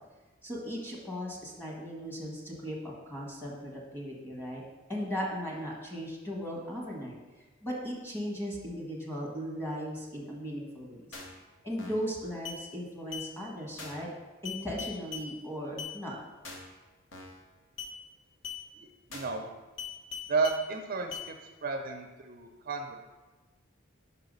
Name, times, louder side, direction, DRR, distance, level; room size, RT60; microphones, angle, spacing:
voice 1, 0.4-4.6 4.9-7.2 7.6-11.2 11.6-14.1 14.4-16.2, equal, 10° left, -3 dB, 1.5 m, -37 dB
sound 1, 11.1-11.4 11.8-12.1 12.5-12.6 13.1-13.3 13.8-14.1 14.5-15.3 15.8-15.9 16.4-16.8 17.1-17.4 17.8-17.9 18.4-18.6 19.1-19.4 19.8-20.6 21.1-21.3, left 6 dB, 65° left, 0.9 m, -41 dB
voice 2, 19.1-19.4 20.3-21.3 21.6-23.0, right 4 dB, 45° right, 4 dB, 0.5 m, -32 dB
5.6 x 4.8 x 5.3 m, 1.2 s
head